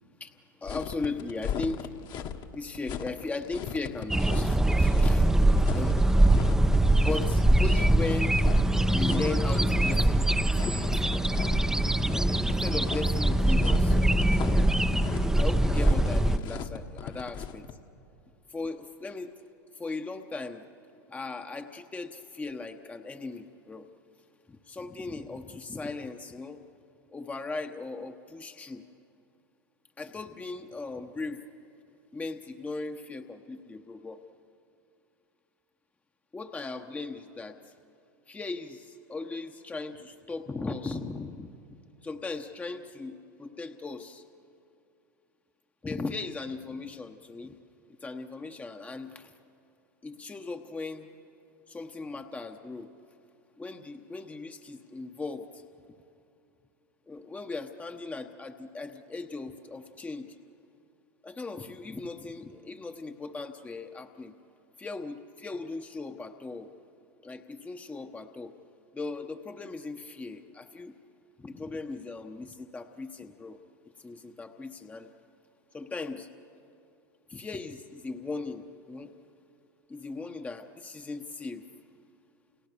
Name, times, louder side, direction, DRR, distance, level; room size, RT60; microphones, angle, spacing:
voice 1, 0.2-1.9 2.5-5.3 5.7-6.1 7.0-8.4 8.9-10.3 10.5-11.3 12.5-14.1 15.1-17.7 18.5-19.3 19.7-20.6 21.1-23.9 24.5-26.6 27.1-28.8 30.0-31.4 32.1-34.2 36.3-37.7 38.3-41.5 42.0-44.2 45.8-47.6 48.0-49.3 50.0-51.1 51.7-52.9 53.6-55.6 57.1-60.4 61.2-64.3 64.8-66.7 67.2-68.5 68.9-70.9 71.4-73.6 74.0-75.1 75.7-76.3 77.3-79.1 79.9-81.6, left 3 dB, 15° left, 6 dB, 1.1 m, -38 dB
sound 1, 0.6-17.7, left 8 dB, 40° left, 1.5 m, -38 dB
sound 2, 4.1-16.4, right 1 dB, 5° right, 0.7 m, -23 dB
29.5 x 29.0 x 6.9 m, 2.6 s
hypercardioid pair, 105°, 11 cm